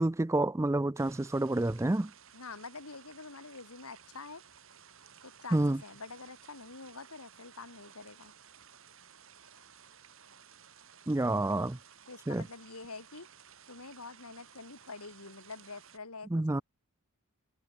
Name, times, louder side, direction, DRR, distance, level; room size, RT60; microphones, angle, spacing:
voice 1, 0.0-2.1 5.5-5.8 11.1-11.8 12.3-12.4 16.3-16.6, right 2 dB, 15° right, 0.4 m, -28 dB
sound 1, 0.9-16.0, right 8 dB, 60° right, 4.3 m, -56 dB
voice 2, 2.3-4.4 5.2-8.3 11.2-11.8 12.1-13.3 13.7-16.6, left 4 dB, 80° left, 2.5 m, -47 dB
head